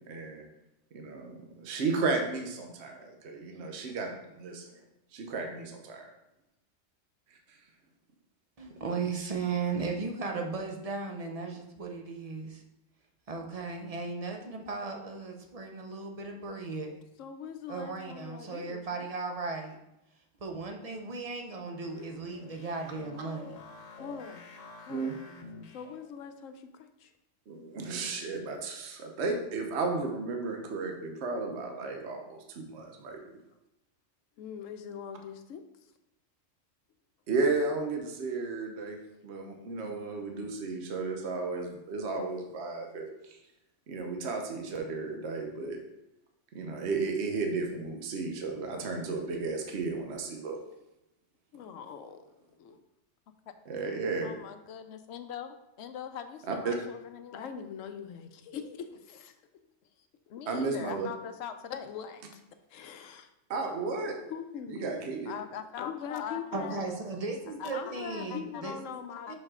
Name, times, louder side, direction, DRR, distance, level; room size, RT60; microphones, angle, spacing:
voice 1, 0.1-0.4 0.9-4.1 4.4-4.8 5.1-6.1 7.5-7.6 24.9-25.1 27.5-33.4 37.3-39.0 39.2-43.4 43.9-45.8 46.5-50.6 53.7-54.4 56.5-56.7 60.5-61.1 63.5-64.2 64.7-65.4, right 3 dB, 60° right, 3 dB, 1.1 m, -33 dB
voice 2, 8.6-12.6 13.3-16.9 17.7-19.8 20.4-23.5 66.5-69.0 69.3-69.4, right 4 dB, 35° right, 3 dB, 0.6 m, -36 dB
voice 3, 17.2-19.1 24.0-24.5 24.8-27.1 34.4-35.9 39.7-40.5 51.5-52.3 52.6-52.8 57.3-59.4 60.0-60.1 61.8-62.4 62.7-63.3 64.3-65.0 65.8-66.8 67.7-69.3, left 7 dB, 90° left, 8 dB, 1.0 m, -43 dB
sound 1, 21.7-26.2, left 3 dB, 40° left, 0.7 m, -49 dB
voice 4, 54.2-57.5 60.3-61.9 65.3-66.8 67.5-68.0 68.3-68.6 69.3-69.4, left 8 dB, 65° left, 9 dB, 0.8 m, -42 dB
6.1 x 5.2 x 3.7 m, 0.88 s
omnidirectional pair, 1.3 m